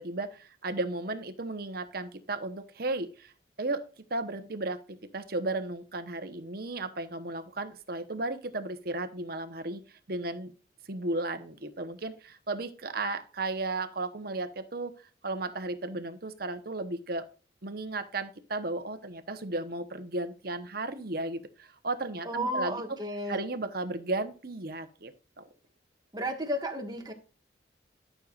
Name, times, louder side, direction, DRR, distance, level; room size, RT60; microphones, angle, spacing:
voice 1, 0.0-3.3 3.6-9.8 10.1-10.5 10.9-14.9 15.2-17.3 17.6-22.8 23.3-25.4, right 2 dB, 55° right, 1.1 m, -34 dB
voice 2, 22.2-23.4 26.1-27.1, equal, 20° right, 1.7 m, -33 dB
12.5 x 6.6 x 2.5 m
head